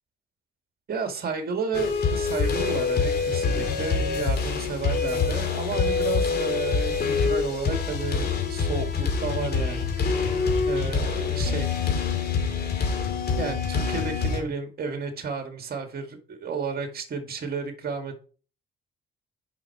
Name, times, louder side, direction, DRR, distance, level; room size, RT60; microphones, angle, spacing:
voice 1, 0.9-9.9 10.6-11.7 13.4-18.3, right 5 dB, 50° right, 5 dB, 2.1 m, -32 dB
sound 1, 1.7-14.4, left 5 dB, 55° left, 2.5 m, -25 dB
7.3 x 5.7 x 4.8 m, 0.41 s
cardioid pair, 90°, 20 cm